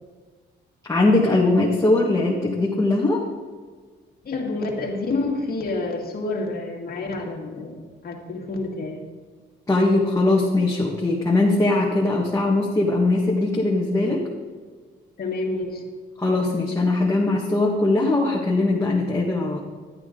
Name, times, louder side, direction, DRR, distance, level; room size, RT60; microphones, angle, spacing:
voice 1, 0.9-3.2 9.7-14.3 16.2-19.6, left 2 dB, 15° left, -4 dB, 1.6 m, -20 dB
voice 2, 4.2-9.0 15.2-15.9, left 2 dB, 50° left, 0 dB, 2.1 m, -28 dB
12.0 x 8.8 x 3.9 m, 1.5 s
cardioid pair, 90°, 20 cm